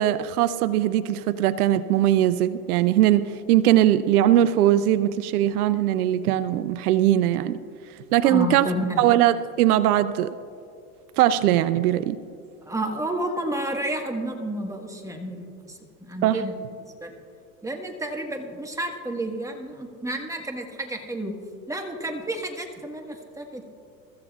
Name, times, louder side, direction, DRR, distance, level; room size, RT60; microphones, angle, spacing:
voice 1, 0.0-7.6 8.1-8.6 9.0-10.3 11.2-12.2 16.2-16.4, right 12 dB, 80° right, 15 dB, 0.6 m, -20 dB
voice 2, 8.2-9.0 12.6-16.5 16.8-17.1 17.6-21.3 21.7-23.7, right 1 dB, 5° right, 3 dB, 1.5 m, -31 dB
24.0 x 14.0 x 2.4 m, 2.4 s
hypercardioid pair, 100°, 44 cm